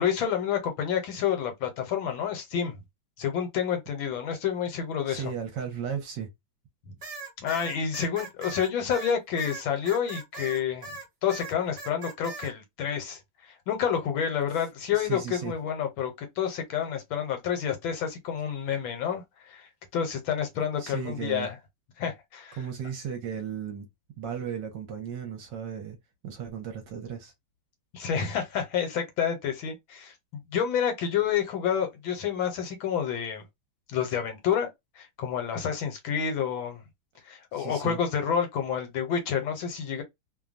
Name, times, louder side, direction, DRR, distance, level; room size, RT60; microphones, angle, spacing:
voice 1, 0.0-2.8 3.2-5.3 7.4-10.9 11.2-21.5 22.0-22.6 27.9-30.1 30.5-33.4 33.9-34.7 35.0-36.8 37.2-40.0, left 8 dB, 75° left, 1.5 m, -29 dB
voice 2, 5.1-6.3 14.9-15.5 20.8-21.5 22.6-23.9 24.2-26.0 26.2-27.3 37.5-38.0, right 7 dB, 65° right, 1.3 m, -35 dB
sound 1, 7.0-11.0 11.3-12.5, right 4 dB, 40° right, 1.2 m, -40 dB
3.3 x 2.2 x 2.4 m
omnidirectional pair, 2.2 m